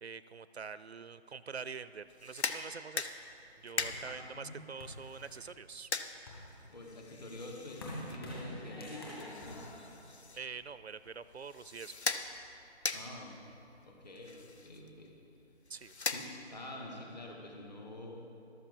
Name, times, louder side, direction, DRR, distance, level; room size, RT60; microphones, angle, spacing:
voice 1, 0.0-3.1 3.6-5.9 10.3-11.9 15.7-15.9, right 5 dB, 70° right, 15 dB, 0.5 m, -45 dB
sound 1, 2.1-16.7, left 4 dB, 70° left, 0.8 m, -42 dB
sound 2, 3.8-5.6 6.1-10.7, left 1 dB, 20° left, 1.9 m, -47 dB
voice 2, 4.0-4.7 6.7-9.7 12.9-13.5 13.8-15.1 16.0-18.3, left 1 dB, 40° left, 1 dB, 1.8 m, -47 dB
13.5 x 12.5 x 4.1 m, 2.6 s
figure-of-eight pair, 160°, 34 cm